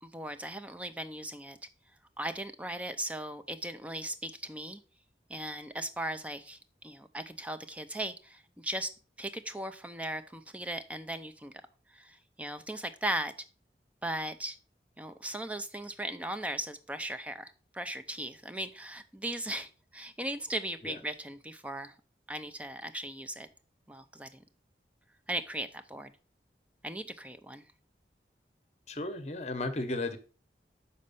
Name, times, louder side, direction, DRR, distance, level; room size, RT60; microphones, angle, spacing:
voice 1, 0.0-1.6 2.2-4.8 5.3-6.6 6.8-8.9 9.2-11.5 11.9-13.3 14.0-14.6 15.0-21.9 22.3-23.5 23.9-24.3 25.3-26.1 26.8-27.6, right 1 dB, 10° right, 10 dB, 0.4 m, -38 dB
voice 2, 28.9-30.2, left 2 dB, 40° left, 8 dB, 0.8 m, -34 dB
6.4 x 4.2 x 5.4 m, 0.38 s
head